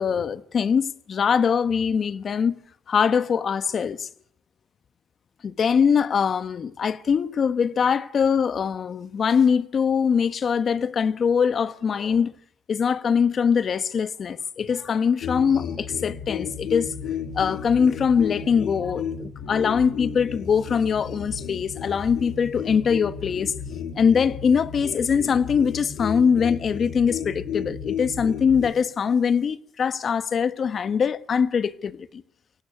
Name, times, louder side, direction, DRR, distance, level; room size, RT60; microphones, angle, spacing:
voice 1, 0.0-2.6 2.9-4.1 5.4-12.3 12.7-16.9 17.3-23.5 24.0-32.2, left 6 dB, 50° left, 1.2 m, -22 dB
sound 1, 15.2-28.7, left 7 dB, 85° left, 3.6 m, -33 dB
23.0 x 17.0 x 8.3 m
cardioid pair, 90°, 0 cm